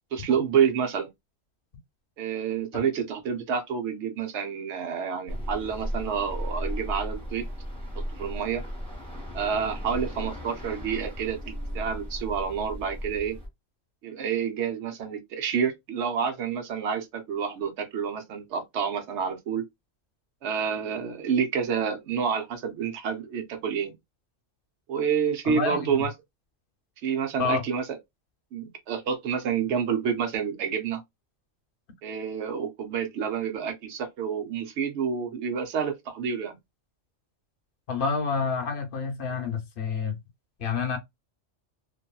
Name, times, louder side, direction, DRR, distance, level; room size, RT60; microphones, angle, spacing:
voice 1, 0.1-1.1 2.2-7.5 7.9-8.6 9.3-13.4 14.0-19.7 20.4-23.9 24.9-26.1 27.0-27.9 28.5-31.0 32.0-36.6, right 7 dB, 65° right, 1.0 m, -28 dB
sound 1, 5.3-13.5, equal, 5° left, 0.8 m, -35 dB
voice 2, 25.4-26.1 27.4-27.6 37.9-40.2 40.6-41.0, left 5 dB, 55° left, 0.7 m, -28 dB
2.7 x 2.6 x 2.3 m
omnidirectional pair, 1.3 m